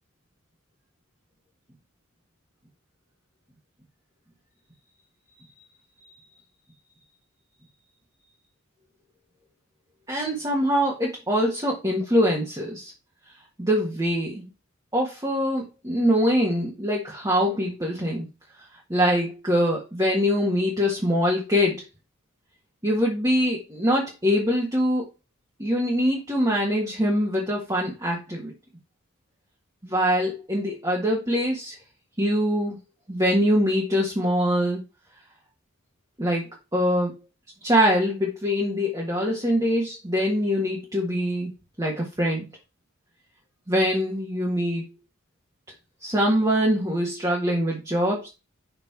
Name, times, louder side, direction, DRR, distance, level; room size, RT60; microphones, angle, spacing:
voice 1, 10.1-12.9 13.6-14.5 14.9-18.3 18.9-21.8 22.8-25.1 25.6-28.5 29.8-31.8 32.2-32.8 33.1-34.8 36.2-37.2 37.6-41.5 41.8-42.5 43.7-44.9 46.0-48.3, equal, 15° right, -3 dB, 1.8 m, -23 dB
5.9 x 5.8 x 4.3 m, 0.27 s
head